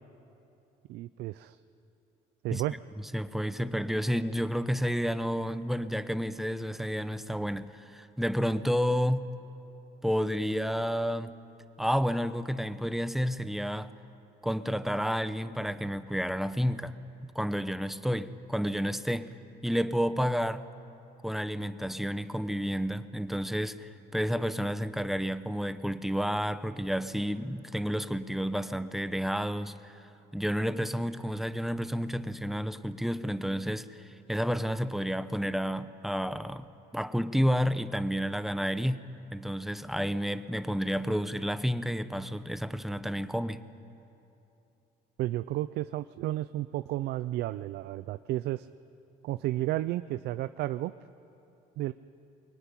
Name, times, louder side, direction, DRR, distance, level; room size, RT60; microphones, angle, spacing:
voice 1, 0.9-1.6 2.4-2.8 45.2-48.7 49.2-50.9 51.8-51.9, right 15 dB, 80° right, 13 dB, 0.5 m, -32 dB
voice 2, 3.1-9.2 10.0-11.3 11.8-13.9 14.4-16.9 17.2-19.3 19.6-20.6 21.2-30.1 30.3-36.7 36.9-39.0 39.3-43.6, equal, ahead, 12 dB, 0.9 m, -30 dB
22.5 x 22.5 x 9.9 m, 2.8 s
cardioid pair, 110°, 17 cm